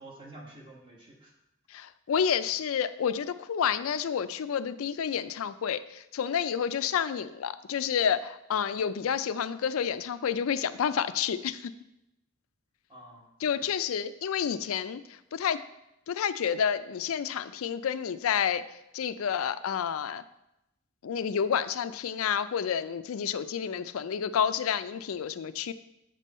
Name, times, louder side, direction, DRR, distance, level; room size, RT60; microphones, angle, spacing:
voice 1, 0.0-1.3 12.9-13.6, right 1 dB, 25° right, -1 dB, 1.4 m, -49 dB
voice 2, 1.7-11.7 13.4-15.6 16.1-18.6 18.9-20.2 21.0-25.7, left 7 dB, 90° left, 13 dB, 0.4 m, -29 dB
7.4 x 5.3 x 4.2 m, 0.86 s
head